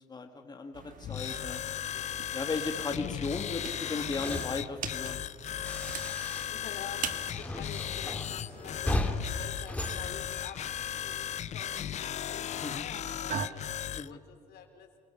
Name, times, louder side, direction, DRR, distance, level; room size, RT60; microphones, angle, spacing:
voice 1, 0.1-1.6 2.3-5.2 12.6-12.8 13.9-14.2, left 4 dB, 25° left, 4 dB, 1.8 m, -36 dB
sound 1, 0.7-13.5, right 8 dB, 55° right, 1.4 m, -45 dB
sound 2, 1.0-14.1, left 10 dB, 45° left, 0.5 m, -36 dB
sound 3, 3.8-6.7 7.0-10.9, left 1 dB, 10° left, 2.5 m, -37 dB
voice 2, 5.6-14.9, left 8 dB, 70° left, 5 dB, 4.1 m, -48 dB
27.0 x 24.5 x 5.7 m, 2.1 s
cardioid pair, 110°, 17 cm